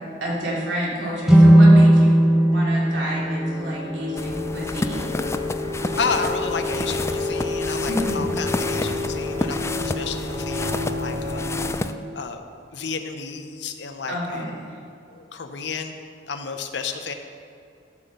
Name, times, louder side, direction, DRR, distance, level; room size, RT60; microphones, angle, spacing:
voice 1, 0.2-5.1 7.8-8.2 14.1-14.6, equal, 85° right, -5 dB, 3.1 m, -29 dB
sound 1, 1.2-4.5, right 1 dB, ahead, 1.2 m, -16 dB
sound 2, 2.1-11.7, left 2 dB, 65° right, 2.2 m, -30 dB
Walking in snow, 4.2-11.9, left 2 dB, 15° left, 0.3 m, -30 dB
voice 2, 6.0-11.5 12.1-12.4 12.7-14.6 15.1-15.9 16.3-17.1, left 5 dB, 70° left, 6 dB, 0.8 m, -31 dB
13.0 x 6.0 x 6.6 m, 2.6 s
head